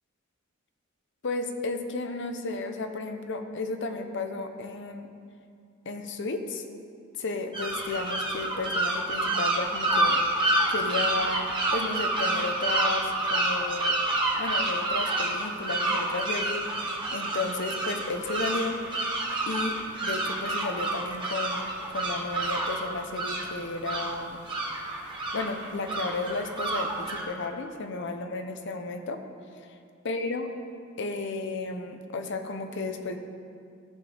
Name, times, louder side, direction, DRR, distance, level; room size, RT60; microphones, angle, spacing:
voice 1, 1.2-5.1 5.9-6.7 7.2-10.2 10.7-14.0 14.4-18.8 19.5-19.8 20.0-24.4 25.3-29.2 30.0-30.5 31.0-33.2, left 3 dB, 60° left, 7 dB, 0.7 m, -33 dB
sound 1, 7.5-27.2, right 2 dB, 25° right, 1.1 m, -28 dB
14.5 x 6.6 x 3.4 m, 2.3 s
head